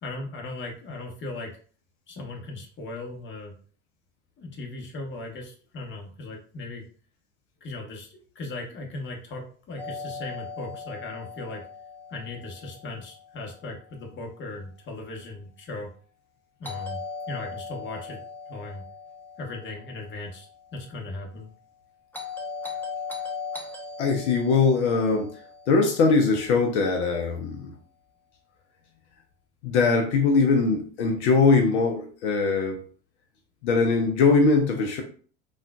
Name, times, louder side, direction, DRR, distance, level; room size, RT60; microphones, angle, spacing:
voice 1, 0.0-1.5 2.1-3.5 4.4-6.8 7.6-11.6 12.1-15.9 16.6-17.0 17.3-18.8 19.4-20.5 20.7-21.5, left 2 dB, 35° left, 1 dB, 1.1 m, -37 dB
Doorbell, 9.8-13.8 16.6-20.9 22.1-26.5, left 5 dB, 5° left, 0.7 m, -39 dB
voice 2, 24.0-25.3 25.7-27.7 29.6-32.8 33.6-35.0, left 4 dB, 75° left, 3 dB, 0.7 m, -21 dB
3.6 x 2.4 x 2.2 m, 0.43 s
hypercardioid pair, 90°, 34 cm